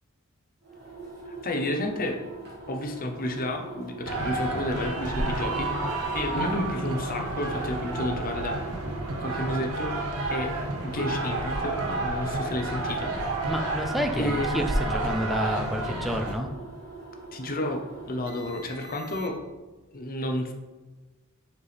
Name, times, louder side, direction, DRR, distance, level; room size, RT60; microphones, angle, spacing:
sound 1, 0.6-19.6, right 2 dB, 50° right, 1.9 m, -43 dB
voice 1, 1.3-2.2 2.7-10.5 10.8-13.5 14.1-14.5 17.3-19.4 19.9-20.5, left 1 dB, 40° left, 3 dB, 0.8 m, -31 dB
sound 2, 4.0-16.3, right 2 dB, 85° right, 1.0 m, -30 dB
voice 2, 13.5-16.5, equal, ahead, 5 dB, 0.5 m, -29 dB
6.9 x 4.5 x 3.4 m, 1.2 s
head